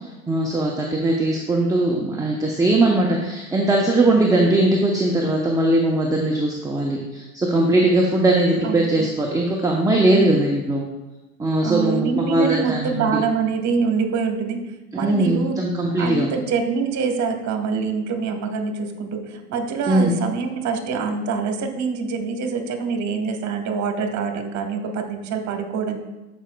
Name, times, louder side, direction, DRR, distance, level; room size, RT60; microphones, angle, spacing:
voice 1, 0.3-10.8 11.4-13.2 15.0-16.3 19.9-20.1, right 1 dB, 10° right, -1 dB, 0.8 m, -20 dB
voice 2, 8.6-9.1 10.1-10.5 11.6-14.6 14.9-15.5 16.0-26.0, right 5 dB, 40° right, 5 dB, 1.4 m, -25 dB
13.0 x 5.2 x 2.3 m, 1.1 s
hypercardioid pair, 90°, 43 cm